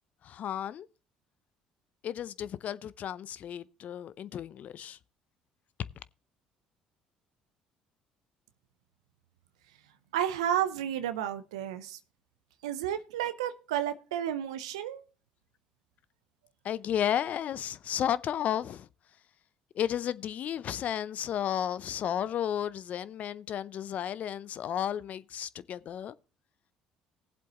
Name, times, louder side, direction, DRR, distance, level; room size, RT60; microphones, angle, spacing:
voice 1, 0.2-0.9 2.0-5.0 16.6-18.9 19.7-26.1, left 10 dB, 55° left, 0.6 m, -33 dB
voice 2, 10.1-12.0 12.6-15.0, right 10 dB, 90° right, 0.6 m, -32 dB
19.0 x 7.7 x 3.0 m
hypercardioid pair, 60°, 3 cm